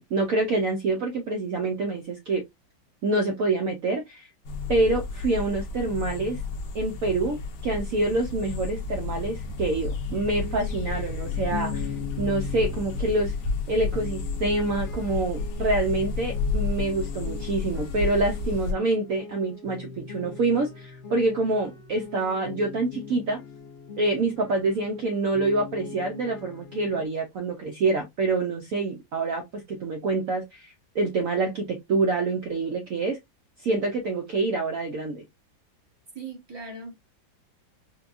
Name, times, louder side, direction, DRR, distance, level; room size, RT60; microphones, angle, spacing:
voice 1, 0.0-2.4 3.0-4.3 4.7-6.4 6.7-7.4 7.6-13.3 13.7-23.4 24.0-33.2 33.6-35.2, right 2 dB, 75° right, 0.7 m, -26 dB
sound 1, 4.4-18.7, left 4 dB, 70° left, 1.2 m, -31 dB
sound 2, 10.3-27.1, left 6 dB, 85° left, 0.5 m, -42 dB
voice 2, 36.1-37.0, right 3 dB, 20° right, 0.6 m, -39 dB
4.3 x 2.2 x 2.4 m
omnidirectional pair, 2.1 m